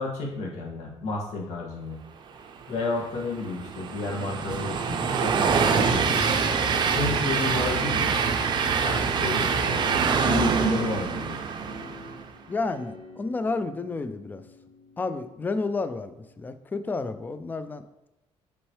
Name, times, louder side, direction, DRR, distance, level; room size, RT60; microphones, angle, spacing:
voice 1, 0.0-2.0 2.7-6.0 6.9-8.1 8.8-9.8 10.2-11.4, left 3 dB, 90° left, -2 dB, 1.8 m, -31 dB
Train, 2.8-12.2, right 6 dB, 40° right, 0.5 m, -25 dB
sound 1, 5.6-9.0 9.5-16.3, left 1 dB, 65° left, 1.4 m, -43 dB
voice 2, 12.5-14.4 15.0-17.8, left 3 dB, 15° left, 11 dB, 0.3 m, -31 dB
6.0 x 5.4 x 3.2 m, 0.91 s
cardioid pair, 170°, 11 cm